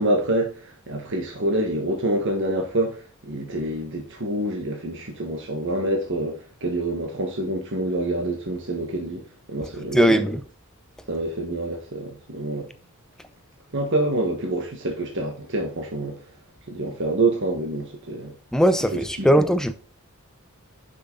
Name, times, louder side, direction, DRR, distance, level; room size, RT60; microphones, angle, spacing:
voice 1, 0.0-9.2 9.5-10.0 11.1-12.7 13.7-16.2 16.7-18.3 18.9-19.3, right 1 dB, 55° right, 1.4 m, -26 dB
voice 2, 9.9-10.4 18.5-19.7, equal, 5° left, 0.5 m, -19 dB
6.8 x 5.9 x 3.9 m
head